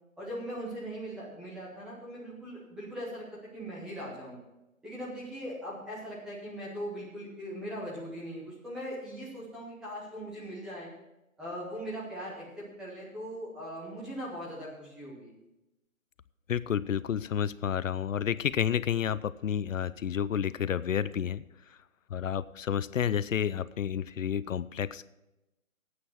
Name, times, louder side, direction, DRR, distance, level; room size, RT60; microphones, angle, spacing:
voice 1, 0.2-4.4 4.8-10.9 11.4-15.3, equal, ahead, -7 dB, 0.7 m, -40 dB
voice 2, 16.5-21.4 22.1-25.1, left 9 dB, 70° left, 17 dB, 0.6 m, -30 dB
11.5 x 8.6 x 5.9 m, 0.94 s
figure-of-eight pair, 150°, 41 cm